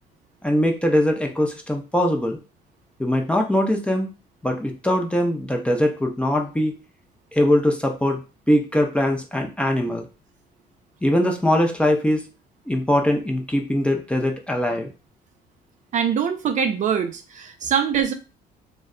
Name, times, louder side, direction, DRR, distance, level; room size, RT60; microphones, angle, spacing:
voice 1, 0.4-2.4 3.0-4.1 4.4-6.7 7.3-10.0 11.0-12.2 12.7-14.9, left 1 dB, 5° left, 2 dB, 0.5 m, -21 dB
voice 2, 15.9-18.1, right 7 dB, 45° right, 6 dB, 0.4 m, -23 dB
2.2 x 2.1 x 3.6 m, 0.31 s
cardioid pair, 110°, 17 cm